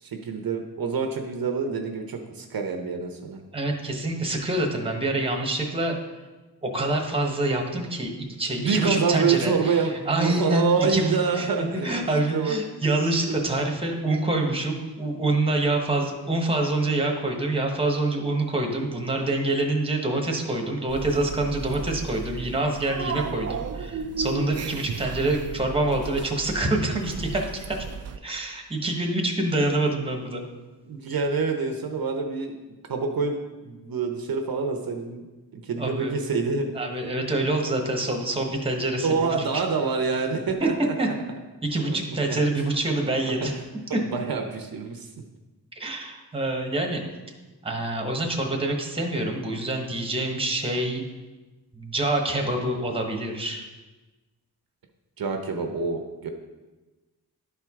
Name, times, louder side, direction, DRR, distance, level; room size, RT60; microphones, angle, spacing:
voice 1, 0.0-3.4 8.6-11.9 12.3-12.6 13.3-13.5 30.9-32.6 32.9-33.4 33.6-35.2 35.5-36.7 39.0-40.9 41.9-42.0 42.3-42.4 43.9-45.1 55.2-56.3, right 5 dB, 60° right, 4 dB, 0.8 m, -26 dB
voice 2, 3.5-5.9 6.6-8.1 8.4-27.8 28.2-30.4 35.8-36.1 36.7-39.6 40.6-40.7 41.0-41.1 41.6-43.6 43.9-44.0 45.8-47.0 47.6-51.0 51.7-53.7, right 2 dB, 15° right, 2 dB, 1.1 m, -26 dB
sound 1, 20.9-28.2, right 5 dB, 40° right, 0.4 m, -34 dB
11.5 x 4.5 x 3.6 m, 1.2 s
wide cardioid pair, 120°, 40 cm